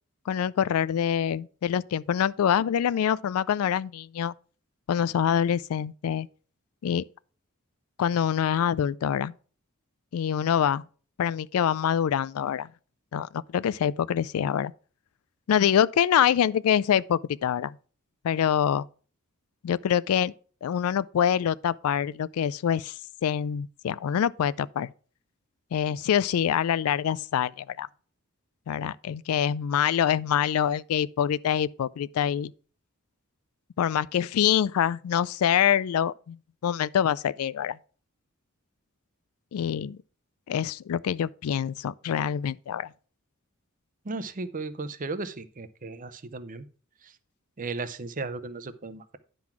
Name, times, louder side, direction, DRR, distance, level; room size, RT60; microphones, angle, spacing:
voice 1, 0.3-4.3 4.9-6.3 6.8-7.0 8.0-9.3 10.1-10.8 11.2-12.7 13.1-14.7 15.5-17.8 18.2-18.9 19.6-20.3 20.6-23.0 23.2-24.9 25.7-27.9 28.7-32.5 33.8-36.4 36.6-37.8 39.5-40.0 40.5-42.9, left 9 dB, 80° left, 0.3 m, -25 dB
voice 2, 44.0-46.7 47.0-47.1 47.6-49.2, right 3 dB, 40° right, 0.6 m, -35 dB
10.0 x 3.9 x 5.9 m
head